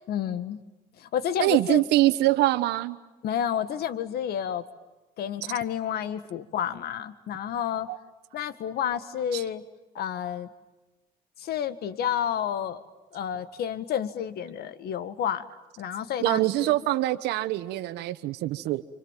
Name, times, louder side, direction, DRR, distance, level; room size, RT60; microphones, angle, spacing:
voice 1, 0.1-0.6 1.0-1.8 3.2-4.6 5.2-7.9 8.3-9.6 10.0-10.5 11.4-12.8 13.1-15.4 15.8-16.7, left 9 dB, 70° left, 13 dB, 1.8 m, -30 dB
voice 2, 1.4-3.0 7.9-8.0 9.3-9.4 16.2-18.8, right 16 dB, 85° right, 10 dB, 1.3 m, -24 dB
29.5 x 26.5 x 7.6 m, 1.1 s
cardioid pair, 110°, 17 cm